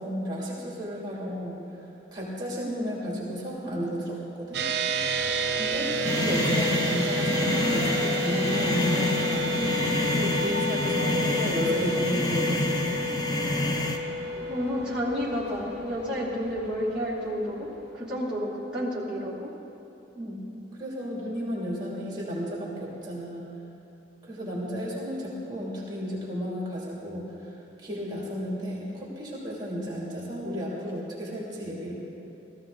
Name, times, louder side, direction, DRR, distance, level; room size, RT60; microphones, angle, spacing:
voice 1, 0.0-1.6 2.1-4.7 5.5-9.8 10.1-12.8 20.1-20.5 20.8-23.5 24.2-27.5 27.8-31.9, equal, 25° right, -5 dB, 2.6 m, -33 dB
sound 1, 4.5-18.1, right 1 dB, 65° right, 0.9 m, -31 dB
Train, 4.9-18.4, left 2 dB, 60° left, 1.2 m, -41 dB
sound 2, 6.0-14.0, left 2 dB, 25° left, 0.8 m, -27 dB
voice 2, 14.3-17.7 17.9-19.5, equal, 5° right, -10 dB, 2.6 m, -31 dB
16.5 x 15.0 x 3.8 m, 2.8 s
head